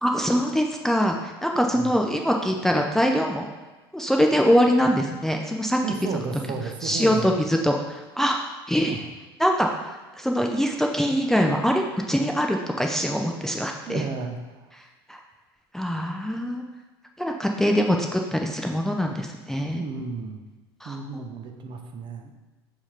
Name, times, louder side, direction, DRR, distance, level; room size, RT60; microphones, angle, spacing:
voice 1, 0.0-3.5 3.9-5.8 6.1-6.2 6.8-9.0 9.4-14.0 15.1-15.2 15.7-16.6 17.2-19.8 20.8-21.2, equal, 5° left, 2 dB, 0.5 m, -23 dB
voice 2, 5.8-7.3 8.8-9.1 13.9-14.7 19.7-20.4 20.8-22.3, right 5 dB, 35° right, 5 dB, 0.8 m, -33 dB
7.1 x 2.9 x 5.0 m, 1.2 s
figure-of-eight pair, 70°, 13 cm